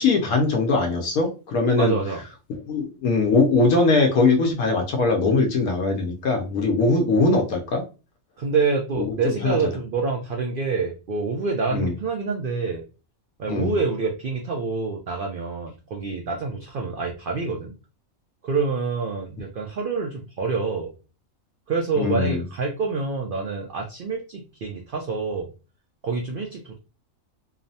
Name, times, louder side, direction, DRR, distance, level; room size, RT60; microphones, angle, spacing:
voice 1, 0.0-2.0 2.7-7.8 9.0-9.6 11.7-11.9 13.5-13.8 22.0-22.4, left 3 dB, 85° left, 2 dB, 1.1 m, -21 dB
voice 2, 1.8-2.2 8.4-12.8 13.4-17.7 18.4-20.9 21.7-25.5 26.0-26.8, right 4 dB, 85° right, 1 dB, 0.4 m, -27 dB
3.0 x 2.0 x 2.6 m, 0.32 s
omnidirectional pair, 1.5 m